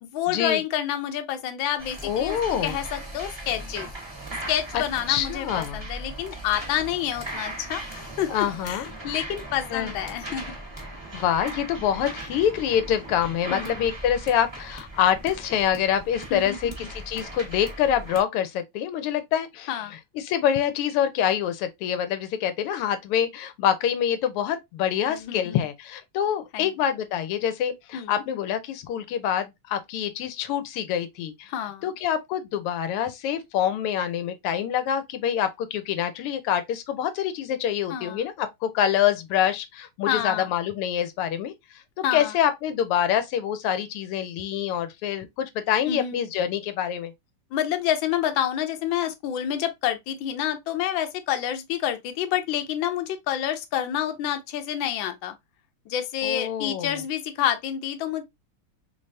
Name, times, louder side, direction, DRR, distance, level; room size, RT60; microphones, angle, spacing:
voice 1, 0.0-2.4 2.6-3.9 4.5-10.6 13.5-13.8 16.3-16.9 19.7-19.9 25.1-25.6 26.5-26.7 27.9-28.2 31.5-31.9 37.9-38.3 40.1-40.5 42.0-42.3 45.9-46.2 47.5-55.3 55.9-58.2, left 10 dB, 70° left, 1.3 m, -28 dB
sound 1, 1.8-18.2, right 1 dB, 20° right, 0.8 m, -38 dB
voice 2, 2.0-2.8 4.7-4.8 5.1-5.8 8.3-9.2 9.7-9.9 11.1-19.7 20.1-31.5 31.8-41.5 42.1-47.1 56.2-56.9, left 9 dB, 90° left, 1.6 m, -26 dB
3.9 x 3.2 x 2.6 m
omnidirectional pair, 2.4 m